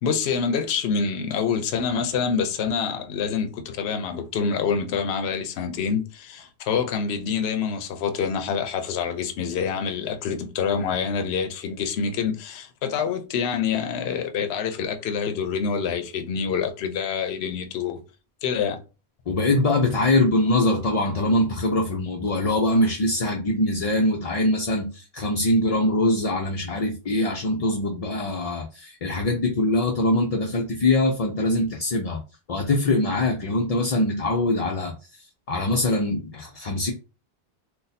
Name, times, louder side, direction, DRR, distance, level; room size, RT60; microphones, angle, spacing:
voice 1, 0.0-18.0 18.4-18.8, left 6 dB, 75° left, 0.8 m, -26 dB
voice 2, 19.3-32.2 32.5-36.9, left 2 dB, 50° left, 0.4 m, -23 dB
2.6 x 2.3 x 3.9 m
omnidirectional pair, 1.1 m